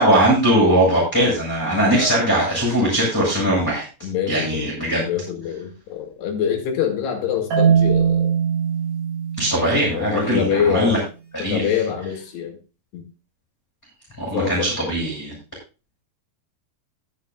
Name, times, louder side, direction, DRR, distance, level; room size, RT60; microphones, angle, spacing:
voice 1, 0.0-3.8 4.3-5.0 9.4-11.0 11.4-11.6 14.2-15.3, right 1 dB, 5° left, -4 dB, 5.6 m, -20 dB
voice 2, 4.0-4.7 5.1-8.3 9.7-11.1 11.4-12.6 12.9-13.0 14.3-14.7, left 8 dB, 85° left, 3 dB, 4.0 m, -25 dB
Marimba xylophone, 7.5-10.5, right 7 dB, 50° right, 8.1 m, -21 dB
20.5 x 7.6 x 2.3 m, 0.31 s
omnidirectional pair, 4.6 m